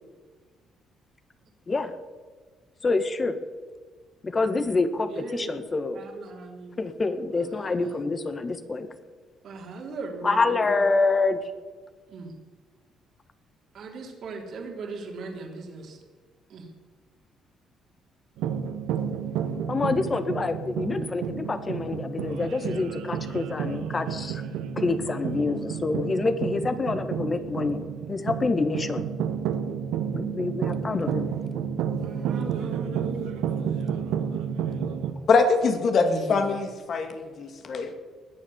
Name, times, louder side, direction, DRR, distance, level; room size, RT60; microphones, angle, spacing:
voice 1, 2.8-3.4 4.2-6.0 6.8-8.9 10.2-11.4 19.7-24.4 24.8-29.0 30.1-31.3, left 3 dB, 35° left, 10 dB, 1.7 m, -26 dB
voice 2, 5.1-5.6 5.9-6.8 7.3-8.1 9.4-10.8 12.1-12.3 13.7-16.0 16.5-16.7 32.0-33.3 35.9-36.6, right 3 dB, 65° right, 2 dB, 3.6 m, -38 dB
sound 1, 18.4-35.1, right 8 dB, 80° right, 1.2 m, -31 dB
voice 3, 35.3-37.9, left 4 dB, 55° left, 6 dB, 2.3 m, -23 dB
20.0 x 7.5 x 7.3 m, 1.5 s
supercardioid pair, 65°, 0 cm